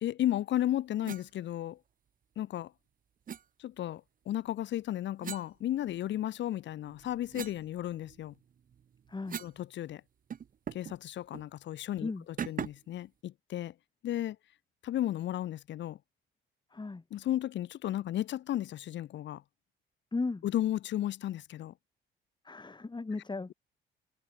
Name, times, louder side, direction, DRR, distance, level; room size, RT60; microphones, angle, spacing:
voice 1, 0.0-1.8 2.4-2.7 3.6-8.3 9.4-10.0 10.7-12.1 12.5-13.7 14.0-14.4 14.8-16.0 17.1-19.4 20.4-21.7, left 12 dB, 65° left, 0.8 m, -34 dB
sound 1, 1.0-1.3 3.3-3.4 5.2-6.3 6.7-9.6 9.9-10.0 10.3-11.0 11.3-11.5 12.4-12.9, right 8 dB, 45° right, 0.8 m, -42 dB
voice 2, 9.1-9.4 12.0-12.2 16.7-17.0 20.1-20.4 22.4-23.5, left 3 dB, 20° left, 3.8 m, -36 dB
cardioid pair, 90°, 20 cm